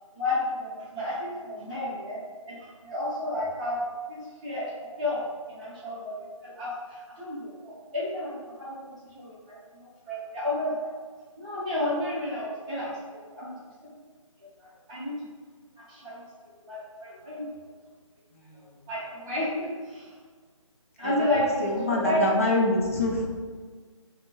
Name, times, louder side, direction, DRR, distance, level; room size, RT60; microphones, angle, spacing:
voice 1, 0.1-2.2 2.5-3.8 4.1-4.7 5.0-5.2 5.5-6.1 6.4-9.6 10.1-10.9 11.4-13.6 14.9-15.1 15.9-16.2 16.6-17.5 18.9-20.1 21.0-21.8 22.0-22.4, left 1 dB, 15° right, -9 dB, 0.8 m, -31 dB
voice 2, 18.3-18.8 21.0-23.2, left 2 dB, 25° left, -2 dB, 0.4 m, -27 dB
4.0 x 2.1 x 2.9 m, 1.5 s
figure-of-eight pair, 155°, 17 cm